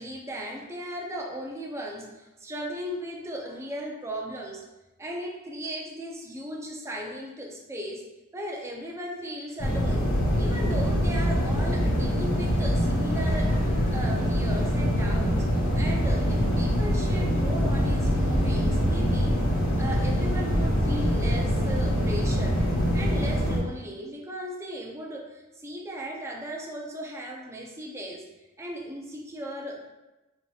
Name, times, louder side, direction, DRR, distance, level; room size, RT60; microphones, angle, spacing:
voice 1, 0.0-4.7 5.0-8.0 8.3-10.1 10.4-15.5 15.7-19.4 19.8-22.6 22.9-28.2 28.6-29.9, equal, 15° right, -1 dB, 0.5 m, -36 dB
sound 1, 9.6-23.6, equal, 70° left, 1.5 m, -24 dB
5.1 x 2.8 x 2.3 m, 1.0 s
head